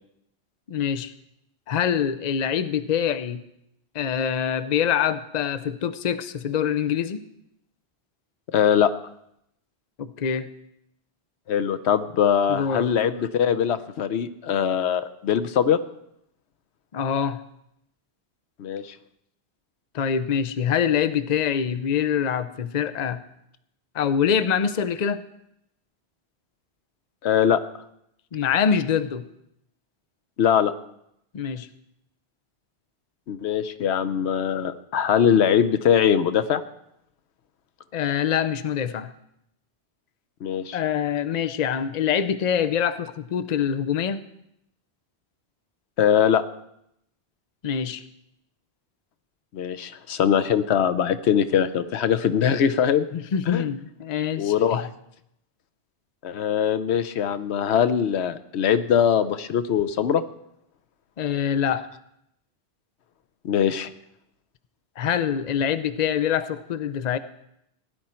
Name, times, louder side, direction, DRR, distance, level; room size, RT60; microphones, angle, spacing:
voice 1, 0.7-1.1 1.7-3.4 3.9-7.2 10.0-10.5 12.5-12.9 16.9-17.4 19.9-23.2 23.9-25.2 28.3-29.2 31.3-31.7 37.9-39.1 40.7-44.2 47.6-48.0 53.1-54.8 61.2-61.8 65.0-67.2, left 8 dB, 45° left, 12 dB, 0.7 m, -25 dB
voice 2, 8.5-8.9 11.5-15.8 18.6-18.9 27.2-27.6 30.4-30.7 33.3-36.6 40.4-40.8 46.0-46.4 49.5-53.1 53.5-53.6 54.4-54.9 56.2-60.2 63.4-63.9, left 8 dB, 85° left, 12 dB, 1.0 m, -22 dB
16.5 x 10.5 x 4.4 m, 0.78 s
omnidirectional pair, 1.1 m